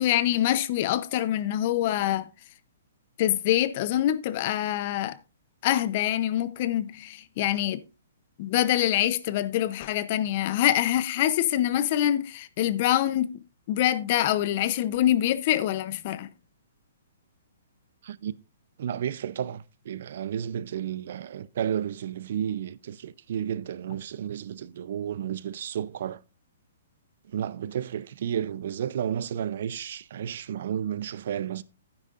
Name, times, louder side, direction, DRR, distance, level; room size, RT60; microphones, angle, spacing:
voice 1, 0.0-2.3 3.2-5.2 5.6-7.8 8.4-13.3 13.7-16.3, left 12 dB, 40° left, 0.7 m, -25 dB
voice 2, 18.8-26.2 27.3-31.6, right 9 dB, 60° right, 0.6 m, -32 dB
11.5 x 9.8 x 2.5 m
hypercardioid pair, 150°, 0 cm